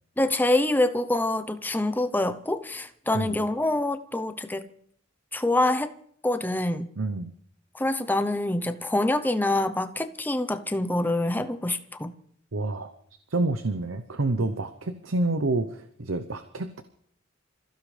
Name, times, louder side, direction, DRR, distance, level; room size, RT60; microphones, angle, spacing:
voice 1, 0.2-4.7 5.3-5.9 6.2-6.9 7.7-12.1, left 1 dB, 10° left, 10 dB, 0.7 m, -26 dB
voice 2, 7.0-7.3 12.5-12.9 13.3-16.8, right 2 dB, 85° right, 9 dB, 0.8 m, -28 dB
27.0 x 15.5 x 3.3 m, 0.64 s
head